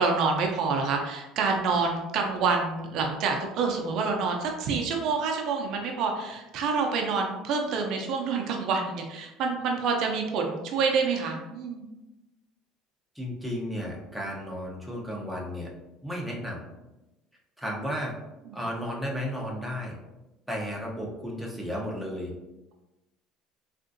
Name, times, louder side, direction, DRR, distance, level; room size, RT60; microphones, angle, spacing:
voice 1, 0.0-11.8 18.5-18.6, right 4 dB, 60° right, 2 dB, 0.5 m, -27 dB
voice 2, 13.1-15.7 16.0-16.7 17.6-18.1 18.5-19.9 20.5-22.3, equal, ahead, -3 dB, 0.7 m, -33 dB
3.6 x 2.4 x 2.5 m, 1.0 s
cardioid pair, 130°, 0 cm